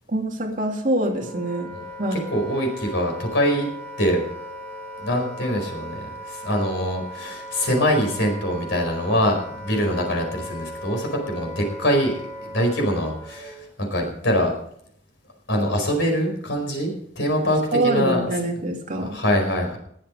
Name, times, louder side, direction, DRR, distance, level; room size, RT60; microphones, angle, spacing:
voice 1, 0.1-1.7 2.0-2.2 17.7-19.2, right 1 dB, 45° right, 1 dB, 2.6 m, -24 dB
Wind instrument woodwind instrument, 1.0-13.6, equal, 10° left, 6.1 m, -38 dB
voice 2, 2.1-3.7 4.0-4.3 5.0-14.5 15.5-18.2 19.0-19.8, equal, 70° left, 2 dB, 4.7 m, -24 dB
20.0 x 7.7 x 5.2 m, 0.66 s
head